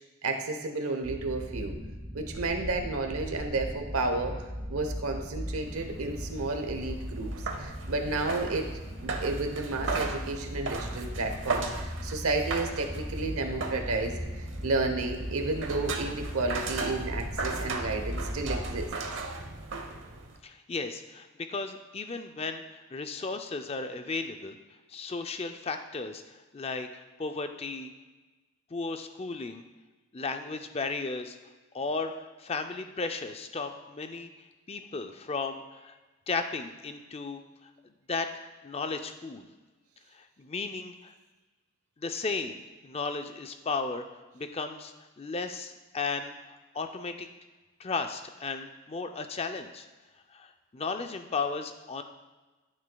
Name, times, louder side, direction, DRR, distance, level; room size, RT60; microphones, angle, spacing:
voice 1, 0.2-1.8 2.1-8.7 9.0-18.9, right 3 dB, 85° right, 5 dB, 0.9 m, -32 dB
sound 1, 1.0-18.9, equal, 25° right, 1.3 m, -38 dB
sound 2, 5.5-20.4, right 3 dB, 60° right, 0.8 m, -37 dB
voice 2, 20.4-24.6 24.9-27.9 28.7-29.6 30.1-31.4 31.7-34.3 34.7-36.0 36.3-37.7 38.1-38.3 38.6-39.5 40.1-41.1 42.0-44.0 44.3-47.3 47.8-49.9 50.3-52.0, left 4 dB, 30° left, 7 dB, 0.4 m, -35 dB
12.0 x 6.4 x 2.3 m, 1.2 s
head